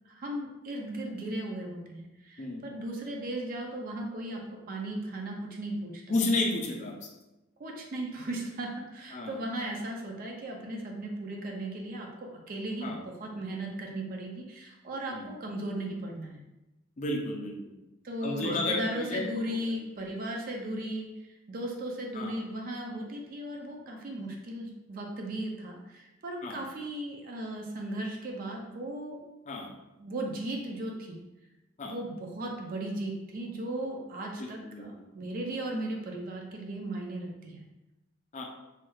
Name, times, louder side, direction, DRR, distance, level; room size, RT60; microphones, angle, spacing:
voice 1, 0.1-6.0 7.6-16.4 18.0-29.2 30.0-31.2 31.8-37.6, right 1 dB, 45° right, 1 dB, 0.4 m, -36 dB
voice 2, 6.1-7.1 9.1-9.4 12.8-13.0 15.1-15.3 17.0-17.7 18.2-19.3 19.6-19.8 22.1-22.4 26.4-26.6 29.5-29.7 31.8-31.9 34.6-34.8 38.3-38.4, left 2 dB, 35° left, 1 dB, 0.5 m, -32 dB
3.1 x 2.3 x 3.1 m, 0.98 s
head